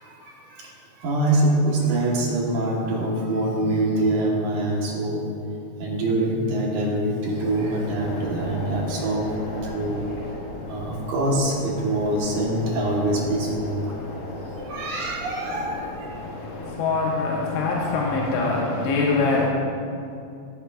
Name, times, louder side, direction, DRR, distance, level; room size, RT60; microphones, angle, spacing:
voice 1, 1.0-5.2 5.8-9.3 9.7-10.1 10.7-13.8 14.5-15.9 18.4-18.5, right 1 dB, 65° right, -2 dB, 2.3 m, -24 dB
sound 1, 7.3-16.8, left 2 dB, 65° left, 2.9 m, -36 dB
voice 2, 16.1-19.5, left 3 dB, 85° left, -4 dB, 3.2 m, -24 dB
15.0 x 9.5 x 2.4 m, 2.5 s
omnidirectional pair, 4.8 m